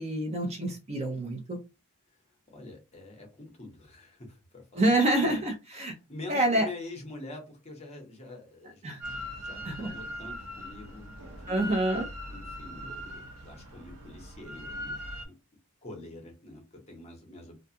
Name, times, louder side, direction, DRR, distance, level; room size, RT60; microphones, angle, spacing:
voice 1, 0.0-1.6 4.7-5.9 6.3-6.7 8.8-9.0 9.6-9.9 11.5-12.0, right 1 dB, 30° right, 2 dB, 0.5 m, -27 dB
voice 2, 2.5-5.4 6.1-11.8 12.3-15.3 15.8-17.6, left 2 dB, 30° left, 2 dB, 0.8 m, -46 dB
Drill, 9.0-15.3, equal, 85° right, 0.7 m, -40 dB
2.4 x 2.3 x 2.7 m, 0.27 s
head